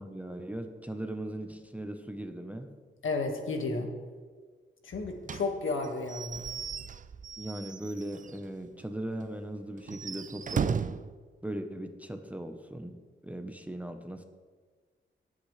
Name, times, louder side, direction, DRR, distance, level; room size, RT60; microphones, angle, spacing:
voice 1, 0.0-2.7 7.4-10.9 11.4-13.0 13.2-14.2, right 1 dB, 5° right, 6 dB, 0.9 m, -38 dB
voice 2, 3.0-3.9 4.8-6.4, left 3 dB, 80° left, 3 dB, 1.8 m, -32 dB
Slam / Squeak / Wood, 5.2-8.5 8.8-8.9 9.2-9.3 9.8-11.1, right 6 dB, 40° right, 0.5 m, -36 dB
19.0 x 8.4 x 3.3 m, 1.5 s
cardioid pair, 75°, 20 cm